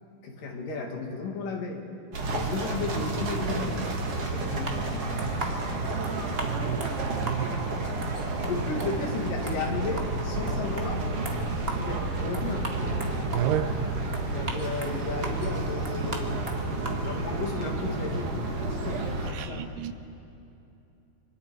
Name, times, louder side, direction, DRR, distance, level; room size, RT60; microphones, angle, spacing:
voice 1, 0.2-1.9 2.3-5.7 8.5-11.1 11.8-12.7 14.3-16.5 17.0-19.7, left 4 dB, 65° left, 3.2 m, -34 dB
sound 1, 2.1-19.3, right 2 dB, 45° right, 2.4 m, -31 dB
sound 2, 4.4-17.3, right 2 dB, 75° right, 0.5 m, -40 dB
voice 2, 6.4-7.7 13.2-14.0 19.3-19.9, right 9 dB, 90° right, 2.9 m, -32 dB
26.5 x 25.0 x 4.6 m
omnidirectional pair, 4.4 m